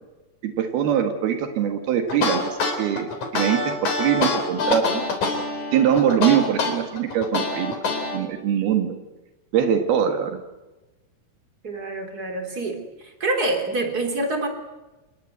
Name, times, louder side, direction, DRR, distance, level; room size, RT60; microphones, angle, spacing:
voice 1, 0.4-5.0 5.7-7.8 8.1-9.0 9.5-10.4, right 9 dB, 70° right, 6 dB, 3.6 m, -22 dB
sound 1, 2.1-8.2, left 3 dB, 50° left, 5.0 m, -25 dB
voice 2, 11.6-12.8 13.2-14.5, right 2 dB, 25° right, 5 dB, 3.6 m, -26 dB
28.0 x 20.5 x 8.1 m, 1.1 s
omnidirectional pair, 4.6 m